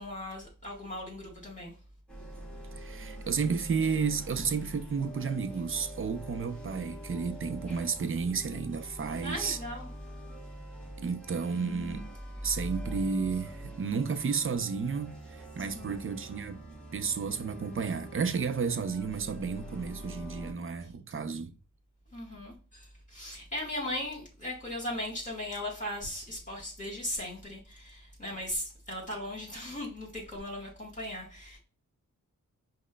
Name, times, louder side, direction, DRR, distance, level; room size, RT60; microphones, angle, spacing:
voice 1, 0.0-1.7 9.2-9.9 15.6-16.0 22.1-31.6, left 1 dB, 25° left, 1.7 m, -38 dB
sound 1, 2.1-20.5, right 1 dB, 5° left, 1.4 m, -44 dB
voice 2, 2.8-9.6 11.0-12.0 12.4-16.6 16.9-21.5, right 5 dB, 40° right, 0.5 m, -32 dB
5.0 x 2.2 x 2.2 m
cardioid pair, 75°, 32 cm